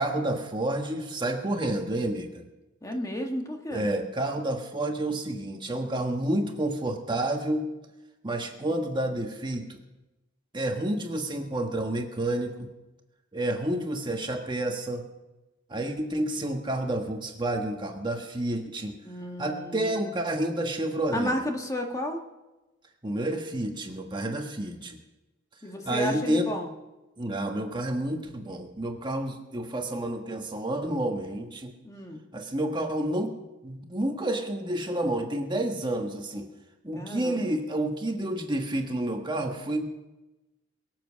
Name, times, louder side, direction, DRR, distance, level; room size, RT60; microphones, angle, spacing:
voice 1, 0.0-2.4 3.7-7.7 8.2-9.6 10.5-12.7 13.3-15.0 15.7-19.0 19.4-21.3 23.0-25.0 25.8-26.5 27.2-31.7 32.3-33.3 33.6-36.5 36.8-39.9, right 1 dB, 25° right, 3 dB, 1.4 m, -29 dB
voice 2, 2.8-3.9 19.0-20.1 21.1-22.2 25.6-26.7 31.8-32.2 36.9-37.6, equal, 15° left, 2 dB, 1.4 m, -32 dB
23.0 x 7.8 x 6.3 m, 1.1 s
head